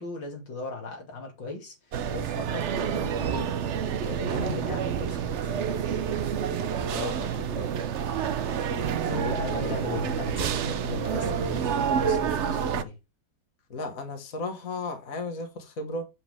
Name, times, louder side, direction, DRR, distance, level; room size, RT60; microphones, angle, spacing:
voice 1, 0.0-3.5 4.0-5.7 9.0-13.0, left 4 dB, 85° left, 2.9 m, -38 dB
sound 1, 1.9-12.8, right 7 dB, 65° right, 0.7 m, -28 dB
voice 2, 6.9-7.7 9.1-10.1 13.7-16.0, left 2 dB, 50° left, 1.9 m, -35 dB
7.4 x 7.1 x 3.5 m
omnidirectional pair, 1.9 m